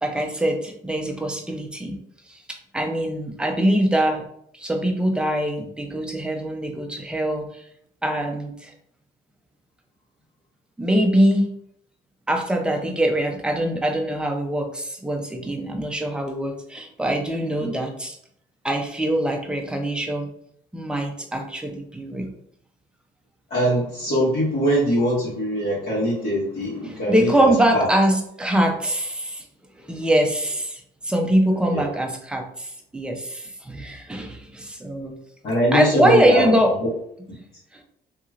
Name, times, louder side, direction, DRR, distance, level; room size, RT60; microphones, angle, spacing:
voice 1, 0.0-2.0 2.3-4.3 4.5-7.6 8.0-8.7 10.8-11.5 12.3-18.2 18.6-20.3 20.7-22.3 26.8-29.5 29.8-35.2 35.7-36.8, right 1 dB, 5° right, 3 dB, 0.5 m, -23 dB
voice 2, 23.5-27.9 31.7-31.9 35.4-36.5 36.8-36.9, equal, 55° left, -9 dB, 1.5 m, -22 dB
2.9 x 2.8 x 2.4 m, 0.70 s
cardioid pair, 105°, 17 cm